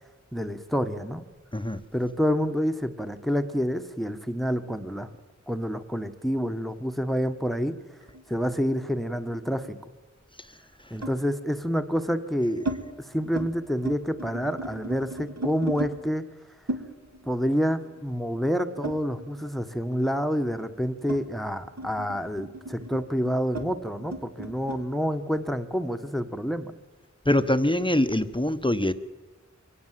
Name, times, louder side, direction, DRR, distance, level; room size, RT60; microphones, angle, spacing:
voice 1, 0.3-1.2 1.9-5.1 5.5-7.8 8.3-9.8 10.9-12.6 13.0-16.2 17.2-26.7, equal, ahead, 8 dB, 1.4 m, -28 dB
sound 1, 8.1-9.7 11.0-11.3 12.0-12.8 13.2-13.5 13.8-15.9 16.7-19.6 19.9-24.8, right 2 dB, 60° right, 2.9 m, -37 dB
voice 2, 27.2-28.9, left 1 dB, 15° left, 10 dB, 1.1 m, -23 dB
23.5 x 18.0 x 7.6 m, 1.2 s
wide cardioid pair, 45°, 30 cm